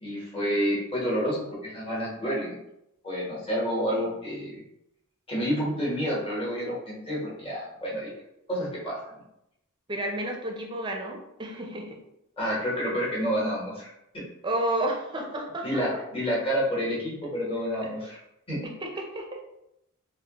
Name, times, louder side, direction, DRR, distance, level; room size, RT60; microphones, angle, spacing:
voice 1, 0.0-2.6 3.0-4.6 5.3-8.1 8.5-9.0 12.4-13.9 14.1-14.2 15.6-18.2 18.5-18.6, equal, 25° left, -6 dB, 1.2 m, -29 dB
voice 2, 9.9-12.0 14.4-15.6 17.8-17.9 18.6-19.4, right 1 dB, 20° right, 1 dB, 0.5 m, -31 dB
3.5 x 2.2 x 2.9 m, 0.84 s
head